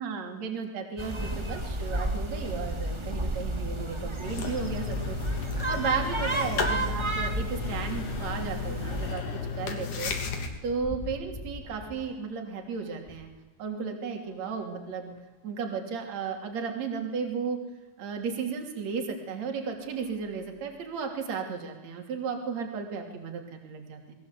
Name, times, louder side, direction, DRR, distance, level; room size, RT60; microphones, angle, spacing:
voice 1, 0.0-5.2 5.7-9.2 9.5-10.1 10.6-13.3 13.6-15.1 15.4-17.6 18.0-24.1, right 5 dB, 50° right, 3 dB, 4.1 m, -34 dB
sound 1, 1.0-9.1, right 2 dB, 20° right, 0.8 m, -32 dB
sound 2, 4.2-10.5, left 5 dB, 65° left, 4.4 m, -34 dB
sound 3, 9.9-13.4 14.1-15.5 16.2-16.3 16.5-16.6 18.3-18.4 19.1-19.3 19.7-21.0, left 2 dB, 10° left, 1.8 m, -48 dB
28.5 x 21.5 x 8.3 m, 1.1 s
omnidirectional pair, 4.1 m